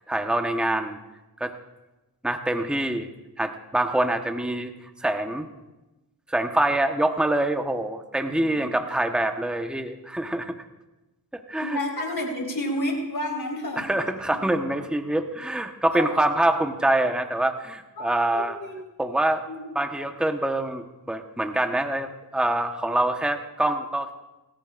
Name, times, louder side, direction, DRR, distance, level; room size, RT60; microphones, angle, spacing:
voice 1, 0.1-1.0 1.4-1.5 2.2-3.1 3.4-4.7 5.0-5.5 6.3-10.5 11.3-11.8 13.8-18.6 19.0-19.4 19.7-24.1, right 1 dB, ahead, 5 dB, 1.1 m, -25 dB
voice 2, 11.6-13.9 15.9-16.3 18.0-18.8 19.5-19.6, left 1 dB, 65° left, 0 dB, 4.2 m, -30 dB
26.5 x 14.0 x 2.5 m, 1.0 s
cardioid pair, 55°, 40 cm